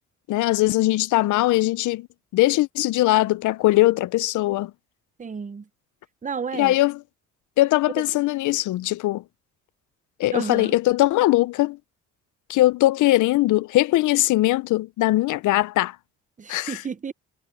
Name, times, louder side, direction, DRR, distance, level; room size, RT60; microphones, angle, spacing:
voice 1, 0.3-2.1 2.3-4.7 6.5-6.9 7.6-9.2 10.2-11.8 12.5-16.0 16.5-16.8, left 17 dB, 80° left, 0.6 m, -20 dB
voice 2, 5.2-5.7 6.2-6.8 8.0-8.1 10.3-10.8 16.4-17.1, right 6 dB, 25° right, 0.7 m, -32 dB
cardioid pair, 90°, 30 cm